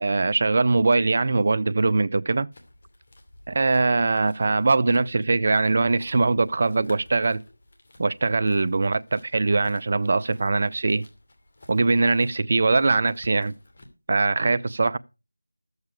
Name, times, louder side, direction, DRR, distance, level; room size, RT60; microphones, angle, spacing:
voice 1, 0.0-2.5 3.5-7.4 8.0-11.0 11.7-13.5 14.1-15.0, right 3 dB, 35° right, 0.5 m, -22 dB
sound 1, 2.5-13.9, left 1 dB, 40° left, 2.7 m, -52 dB
13.0 x 8.0 x 4.9 m
figure-of-eight pair, 170°, 0 cm